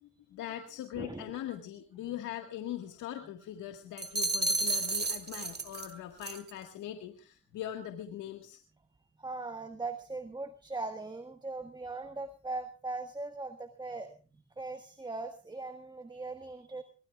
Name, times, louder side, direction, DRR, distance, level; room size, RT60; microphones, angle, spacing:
voice 1, 0.0-8.6, left 11 dB, 85° left, 4 dB, 1.8 m, -41 dB
voice 2, 1.0-1.3 9.2-14.2 14.6-16.8, right 3 dB, 15° right, 7 dB, 1.6 m, -40 dB
sound 1, 4.0-5.9 6.2-6.5, right 3 dB, 35° right, 2.1 m, -31 dB
23.5 x 19.5 x 2.4 m, 0.34 s
cardioid pair, 90°, 30 cm